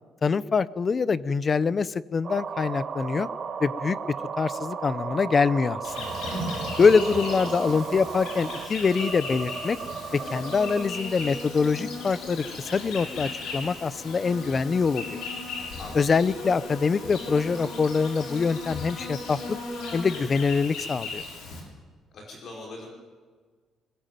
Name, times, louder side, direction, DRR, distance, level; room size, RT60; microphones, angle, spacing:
voice 1, 0.2-3.3 3.6-4.0 4.4-6.1 6.8-9.8 10.1-15.2 15.9-19.6 19.9-21.2, left 5 dB, 30° left, 18 dB, 0.7 m, -24 dB
sound 1, 2.2-10.9, right 6 dB, 40° right, 2.3 m, -35 dB
Insect, 5.8-21.6, left 2 dB, 75° left, 6.9 m, -36 dB
voice 2, 15.8-16.1 22.1-22.9, left 2 dB, 45° left, 0 dB, 4.9 m, -41 dB
21.5 x 21.0 x 9.2 m, 1.5 s
cardioid pair, 150°, 0 cm